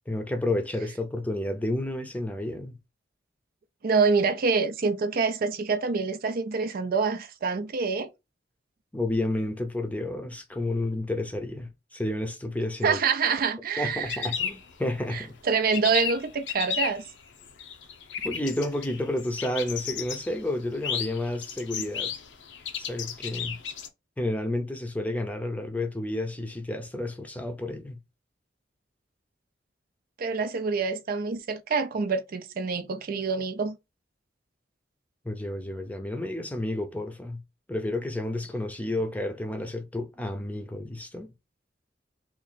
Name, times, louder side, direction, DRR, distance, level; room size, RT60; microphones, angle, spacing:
voice 1, 0.1-2.8 8.9-13.0 13.8-15.3 18.2-22.1 22.8-23.6 24.2-28.0 35.2-37.4 37.7-41.3, left 1 dB, 10° left, 0.6 m, -31 dB
voice 2, 3.8-8.1 12.8-14.3 15.1-17.0 30.2-33.8, right 5 dB, 55° right, 0.4 m, -26 dB
sound 1, 13.9-15.2 15.5-23.9, left 8 dB, 85° left, 0.7 m, -34 dB
3.0 x 2.5 x 4.0 m
head